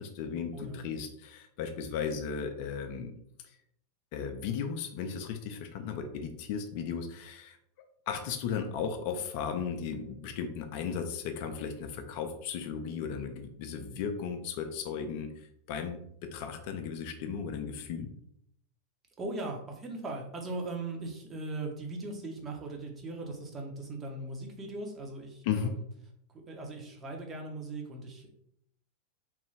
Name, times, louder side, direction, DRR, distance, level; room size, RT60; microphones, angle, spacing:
voice 1, 0.0-3.1 3.4-3.6 4.1-7.6 8.1-18.1 25.4-25.7, left 6 dB, 45° left, 6 dB, 0.3 m, -36 dB
voice 2, 0.5-0.8 19.2-25.8 26.3-28.4, right 2 dB, 20° right, 1 dB, 0.7 m, -39 dB
3.0 x 2.2 x 3.2 m, 0.72 s
figure-of-eight pair, 90°, 0 cm